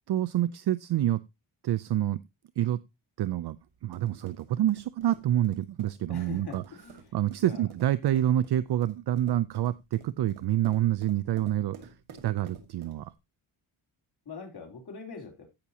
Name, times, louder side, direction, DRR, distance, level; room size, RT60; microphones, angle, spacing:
voice 1, 0.1-1.2 1.6-2.2 2.6-2.8 3.2-3.6 3.8-6.6 7.1-11.9 12.2-13.1, right 12 dB, 55° right, 16 dB, 0.5 m, -27 dB
sound 1, 3.6-13.2, right 6 dB, 80° right, 2.0 m, -52 dB
voice 2, 6.1-7.7 14.3-15.5, left 4 dB, 50° left, 2 dB, 3.6 m, -43 dB
15.5 x 6.0 x 2.8 m, 0.23 s
cardioid pair, 100°, 48 cm